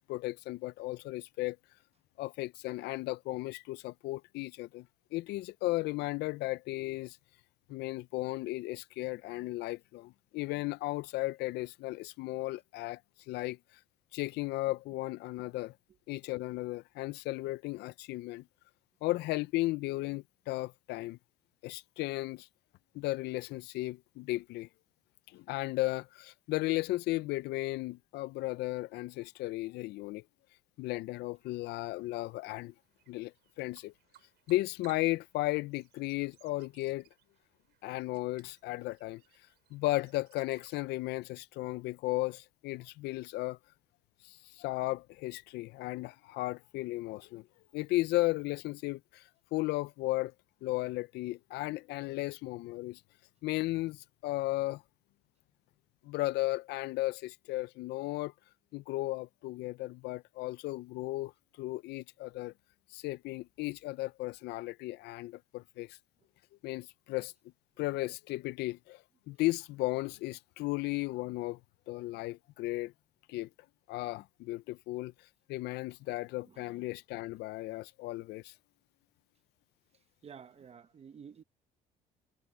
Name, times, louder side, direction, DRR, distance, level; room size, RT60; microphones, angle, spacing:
voice 1, 0.1-1.6 2.2-7.2 7.7-13.0 13.3-13.6 14.1-15.7 16.1-18.4 19.0-21.2 21.6-22.5 22.9-24.7 25.3-30.2 30.8-32.7 33.1-33.9 34.5-37.1 37.8-39.2 39.7-43.6 44.2-47.5 47.7-50.3 50.6-53.0 53.4-54.8 56.0-58.3 58.7-61.3 61.6-62.5 62.9-66.0 66.6-67.3 67.8-71.6 71.9-72.9 73.3-73.5 73.9-75.1 75.5-78.5, left 19 dB, 80° left, 0.5 m, -35 dB
sound 1, 32.0-40.8, right 15 dB, 80° right, 4.4 m, -66 dB
voice 2, 80.2-81.4, right 7 dB, 35° right, 0.9 m, -51 dB
cardioid pair, 110°, 17 cm